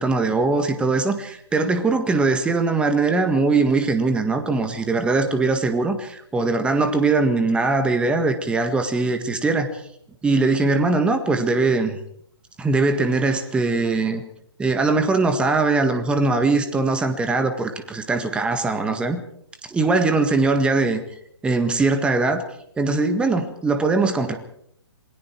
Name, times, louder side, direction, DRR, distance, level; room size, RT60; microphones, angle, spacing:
voice 1, 0.0-9.7 10.2-12.0 12.6-14.2 14.6-19.2 19.7-21.0 21.4-22.4 22.8-24.4, right 3 dB, 5° right, 7 dB, 1.7 m, -21 dB
28.0 x 20.0 x 4.7 m, 0.68 s
figure-of-eight pair, 135°, 14 cm